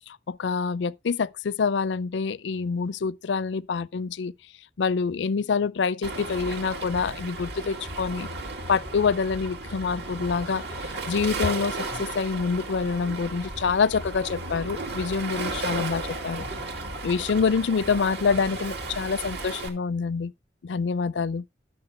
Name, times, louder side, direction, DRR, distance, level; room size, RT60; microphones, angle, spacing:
voice 1, 0.1-4.3 4.8-8.3 8.7-16.5 17.0-20.3 20.6-21.4, left 5 dB, 70° left, 0.4 m, -26 dB
Waves surf, 6.0-19.7, right 2 dB, 65° right, 2.5 m, -34 dB
12.0 x 6.5 x 4.2 m
head